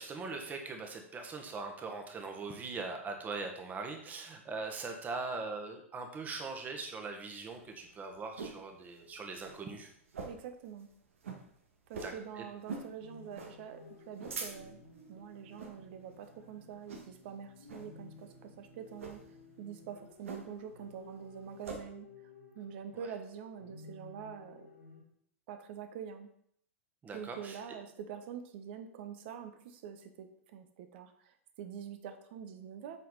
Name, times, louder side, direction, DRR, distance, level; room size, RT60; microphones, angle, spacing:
voice 1, 0.0-9.9 12.0-12.4 27.0-27.6, right 3 dB, 20° right, 4 dB, 1.5 m, -41 dB
sound 1, 7.4-8.6 9.0-9.1 9.4-9.6 10.1-10.5 10.8-10.9 11.2-11.4 11.9-12.2 12.6-12.9 13.3-13.5 14.0-14.9 15.5-15.8 16.2-16.4 16.9-17.3 17.7-17.9 18.9-19.2 20.2-20.7 21.0-21.8, right 4 dB, 70° right, 1.6 m, -43 dB
voice 2, 10.2-10.9 11.9-13.8 14.1-14.8 15.1-19.2 19.6-22.1 22.5-24.7 25.5-26.3 27.1-30.3 30.5-33.0, right 8 dB, 50° right, 8 dB, 1.0 m, -45 dB
sound 2, 13.0-25.0, left 3 dB, 90° left, 2.2 m, -55 dB
8.1 x 6.0 x 4.0 m, 0.66 s
figure-of-eight pair, 100°, 8 cm